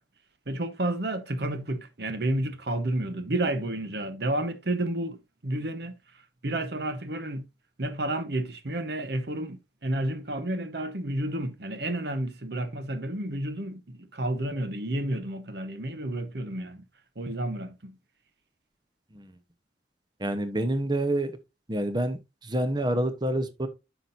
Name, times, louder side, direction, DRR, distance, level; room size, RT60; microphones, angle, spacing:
voice 1, 0.5-7.4 7.8-16.8 17.2-18.0, right 1 dB, 60° right, 1.0 m, -31 dB
voice 2, 20.2-21.3 21.7-23.7, right 1 dB, 25° right, 0.9 m, -28 dB
9.8 x 6.1 x 2.6 m
head